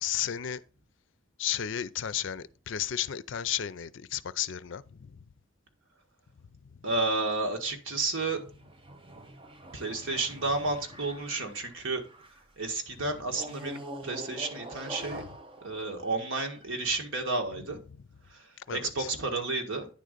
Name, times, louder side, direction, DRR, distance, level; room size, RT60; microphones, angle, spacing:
voice 1, 0.0-0.6 1.4-5.2 15.1-15.2 18.6-19.1, left 10 dB, 65° left, 0.5 m, -33 dB
voice 2, 6.8-8.4 9.7-15.2 15.6-17.8 18.3-19.9, right 3 dB, 70° right, 1.7 m, -32 dB
sound 1, 7.9-12.5 13.3-16.9, right 1 dB, 25° right, 0.9 m, -45 dB
9.8 x 3.7 x 6.6 m
head